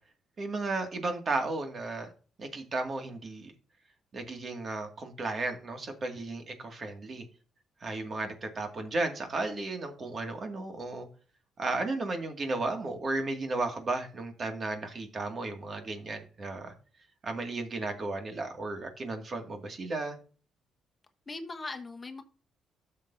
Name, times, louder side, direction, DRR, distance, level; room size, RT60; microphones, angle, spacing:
voice 1, 0.4-2.1 2.4-3.5 4.1-7.3 7.8-11.1 11.6-16.7 17.2-20.2, right 2 dB, 45° right, 2.1 m, -34 dB
voice 2, 21.3-22.2, left 3 dB, 25° left, 1.1 m, -40 dB
12.5 x 6.8 x 2.7 m
cardioid pair, 90°, 0 cm